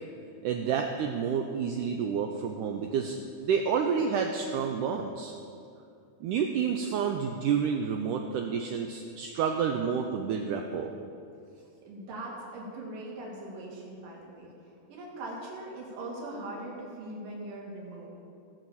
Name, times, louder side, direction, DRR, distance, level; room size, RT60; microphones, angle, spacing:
voice 1, 0.4-5.3 6.2-10.9, right 6 dB, 85° right, 3 dB, 1.8 m, -29 dB
voice 2, 11.8-14.5 14.9-18.1, right 1 dB, 65° right, -4 dB, 3.8 m, -40 dB
17.5 x 5.9 x 7.1 m, 2.5 s
omnidirectional pair, 4.3 m